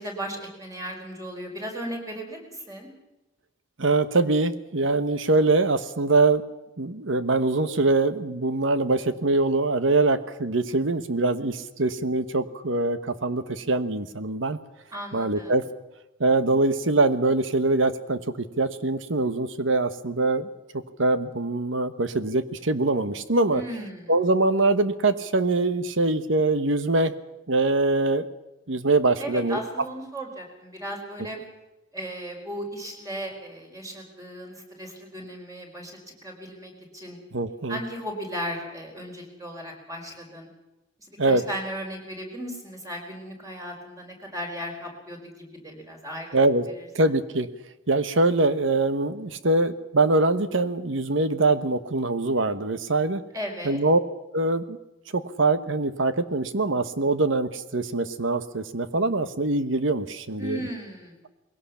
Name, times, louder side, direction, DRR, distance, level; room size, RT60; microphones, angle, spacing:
voice 1, 0.0-2.9 14.9-15.5 23.5-24.1 29.2-31.4 31.9-37.2 37.7-40.5 41.1-46.4 46.8-46.9 53.3-53.8 60.4-61.1, equal, 15° right, 1 dB, 4.8 m, -36 dB
voice 2, 3.8-6.4 6.8-14.6 15.1-15.6 16.2-20.5 21.0-23.6 24.1-27.1 27.5-28.3 28.7-29.6 37.3-37.8 41.2-41.4 46.3-46.7 46.9-47.5 47.9-53.2 53.6-54.0 54.3-54.8 55.1-60.7, right 2 dB, 75° right, 12 dB, 1.2 m, -23 dB
21.0 x 17.5 x 7.2 m, 0.99 s
head